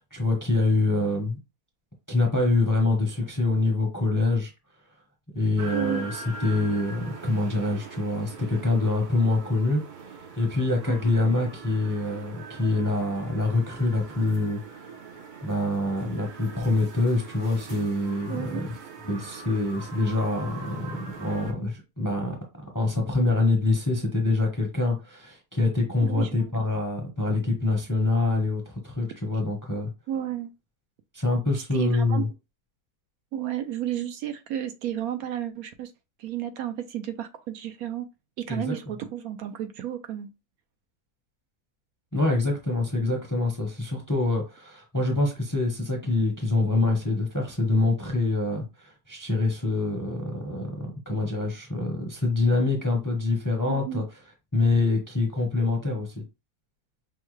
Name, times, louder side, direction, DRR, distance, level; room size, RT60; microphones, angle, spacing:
voice 1, 0.1-1.4 2.1-4.5 5.3-9.8 10.4-14.9 15.4-18.4 19.1-20.9 21.2-22.3 22.7-29.9 31.1-32.3 38.5-38.7 42.1-50.7 51.1-54.0 54.5-56.2, left 2 dB, 20° left, 0.6 m, -25 dB
sound 1, 5.6-21.5, right 4 dB, 50° right, 0.6 m, -42 dB
voice 2, 5.7-6.1 10.9-11.0 18.3-18.6 26.0-26.3 30.1-30.5 31.5-32.3 33.3-35.9 36.2-38.1 38.4-40.3 53.7-54.0, right 11 dB, 75° right, 1.0 m, -32 dB
5.5 x 2.2 x 3.1 m
omnidirectional pair, 1.6 m